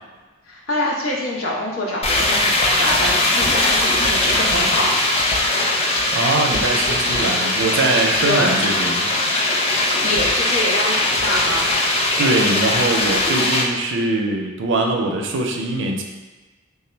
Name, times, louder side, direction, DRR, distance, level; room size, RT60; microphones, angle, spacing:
voice 1, 0.5-4.9 8.2-8.6 10.0-11.7, left 1 dB, 75° left, -3 dB, 0.8 m, -25 dB
sound 1, 2.0-13.6, left 2 dB, 30° left, 0.4 m, -20 dB
voice 2, 6.1-9.1 12.2-16.0, right 2 dB, 60° right, 2 dB, 0.4 m, -22 dB
3.5 x 2.0 x 4.3 m, 1.2 s
head